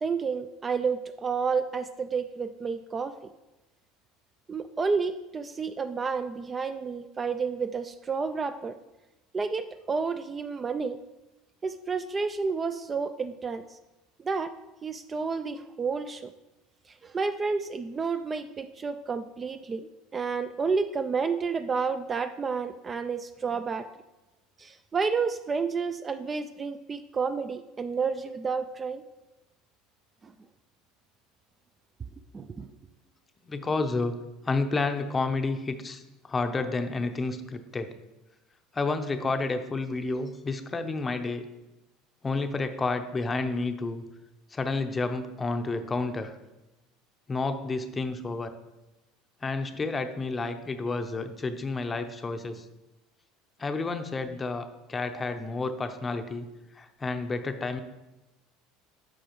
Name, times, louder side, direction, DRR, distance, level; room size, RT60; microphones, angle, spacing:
voice 1, 0.0-3.2 4.5-8.8 9.3-11.0 11.6-13.8 14.2-14.5 14.8-16.3 16.9-23.9 24.6-29.0 30.2-30.3 32.3-32.7, right 5 dB, 25° right, 11 dB, 0.3 m, -30 dB
voice 2, 33.5-34.1 34.4-37.9 38.7-41.5 42.2-44.0 44.5-46.4 47.3-48.6 49.4-52.7 53.6-56.5 56.7-57.8, left 3 dB, 20° left, 8 dB, 0.6 m, -30 dB
10.0 x 6.1 x 3.1 m, 1.0 s
supercardioid pair, 110°, 0 cm